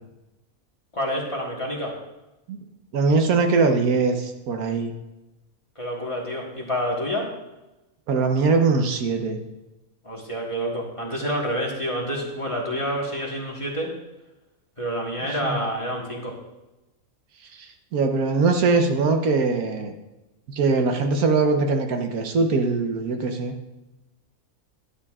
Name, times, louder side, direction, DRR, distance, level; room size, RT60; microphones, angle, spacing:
voice 1, 0.9-2.0 5.7-7.3 10.0-13.9 14.8-16.4, equal, 25° left, -2 dB, 1.5 m, -28 dB
voice 2, 2.9-4.9 8.1-9.4 15.4-15.6 17.6-19.9 20.5-23.5, right 4 dB, 90° right, 5 dB, 1.4 m, -22 dB
11.5 x 9.6 x 2.4 m, 1.0 s
omnidirectional pair, 1.5 m